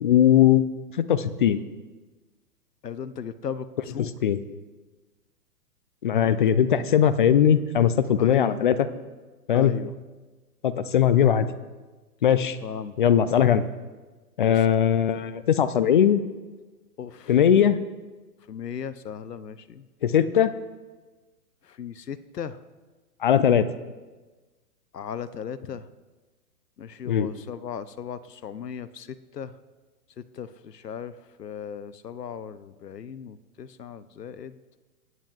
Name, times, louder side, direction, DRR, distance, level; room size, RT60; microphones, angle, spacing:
voice 1, 0.0-0.6 1.0-1.6 4.2-4.4 6.0-8.8 9.5-9.7 10.6-11.5 12.2-12.6 13.0-13.6 14.4-16.2 17.3-17.8 20.0-20.5 23.2-23.6 27.1-27.3, left 9 dB, 35° left, 14 dB, 0.4 m, -19 dB
voice 2, 2.8-4.1 6.2-6.6 8.2-8.6 9.5-9.9 12.6-13.0 13.4-13.6 14.4-14.6 17.0-17.4 18.5-19.9 21.6-22.6 24.9-25.9 26.8-29.5 30.2-31.1 31.4-34.6, left 7 dB, 85° left, 15 dB, 0.8 m, -37 dB
22.0 x 9.3 x 2.4 m, 1.3 s
figure-of-eight pair, 120°, 47 cm